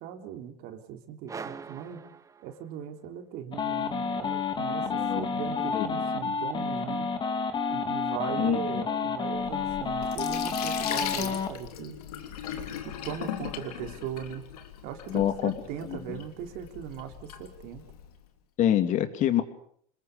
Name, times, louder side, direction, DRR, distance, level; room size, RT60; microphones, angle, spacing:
voice 1, 0.0-2.0 2.4-7.1 7.7-12.0 12.8-14.5 14.8-17.8, right 9 dB, 55° right, 5 dB, 3.5 m, -39 dB
sound 1, 1.3-3.0, right 5 dB, 15° right, 1.2 m, -42 dB
sound 2, 3.5-11.5, left 5 dB, 25° left, 2.8 m, -30 dB
voice 2, 4.8-5.5 5.7-6.4 8.4-8.9 15.1-15.5 15.8-16.2 18.6-19.4, left 11 dB, 40° left, 8 dB, 2.8 m, -27 dB
Sink (filling or washing), 9.4-18.2, left 9 dB, 85° left, 3.3 m, -39 dB
28.5 x 21.0 x 6.8 m, 0.64 s
supercardioid pair, 125°, 19 cm